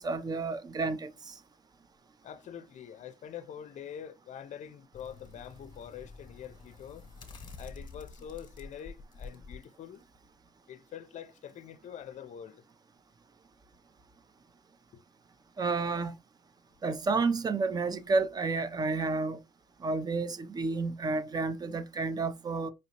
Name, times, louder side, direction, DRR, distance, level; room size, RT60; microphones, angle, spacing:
voice 1, 0.0-1.4 15.6-16.1 16.8-19.4 19.8-22.7, right 3 dB, 25° right, 0.5 m, -30 dB
voice 2, 2.2-7.1 7.6-10.0 10.7-12.6 14.9-15.0, left 9 dB, 45° left, 0.5 m, -45 dB
sound 1, 4.9-9.6 10.0-10.1, left 4 dB, 30° left, 1.1 m, -48 dB
5.2 x 2.7 x 2.8 m
cardioid pair, 110°, 17 cm